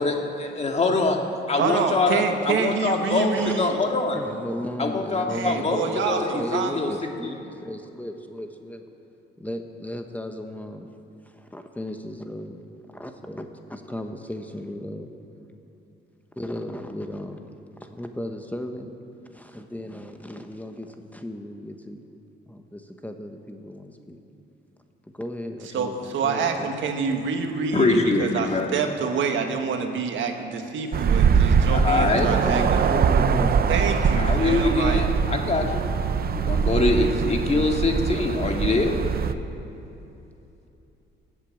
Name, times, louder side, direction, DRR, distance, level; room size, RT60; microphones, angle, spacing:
voice 1, 0.0-1.2 1.5-4.2 4.8-6.9 7.2-7.4 27.7-28.7 31.7-32.3 34.1-35.9 36.3-38.9, left 3 dB, 35° left, 2 dB, 2.1 m, -24 dB
voice 2, 1.6-3.8 5.3-6.7 25.7-32.8 33.7-35.0, right 5 dB, 75° right, 5 dB, 1.6 m, -27 dB
voice 3, 4.1-8.8 9.4-10.9 11.2-12.6 12.9-15.1 16.4-17.5 17.9-18.9 19.3-22.1 22.5-24.2 25.1-26.7 32.2-34.3, left 1 dB, 10° left, 5 dB, 1.1 m, -36 dB
sound 1, 30.9-39.3, right 6 dB, 50° right, 0.7 m, -22 dB
18.0 x 8.3 x 7.8 m, 2.9 s
cardioid pair, 90°, 20 cm